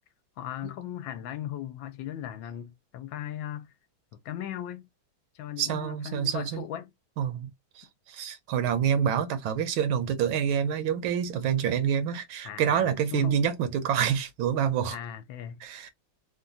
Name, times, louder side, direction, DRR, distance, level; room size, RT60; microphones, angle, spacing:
voice 1, 0.4-3.7 4.2-4.9 5.3-6.9 12.4-12.9 13.1-13.5 14.9-15.6, left 11 dB, 80° left, 1.3 m, -37 dB
voice 2, 5.6-6.6 7.2-7.5 7.8-15.0 15.6-15.9, right 8 dB, 85° right, 1.5 m, -27 dB
3.7 x 2.2 x 2.6 m
omnidirectional pair, 2.2 m